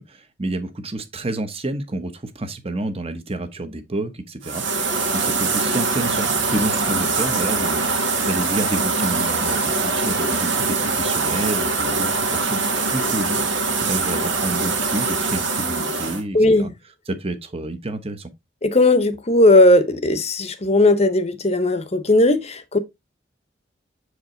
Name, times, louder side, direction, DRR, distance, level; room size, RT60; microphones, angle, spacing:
voice 1, 0.0-16.7 17.1-18.3, right 2 dB, 30° right, 1.1 m, -29 dB
sound 1, 4.4-16.2, right 4 dB, 85° right, 1.7 m, -23 dB
voice 2, 16.3-16.7 18.6-22.8, left 2 dB, 35° left, 0.8 m, -17 dB
7.1 x 4.9 x 3.9 m
head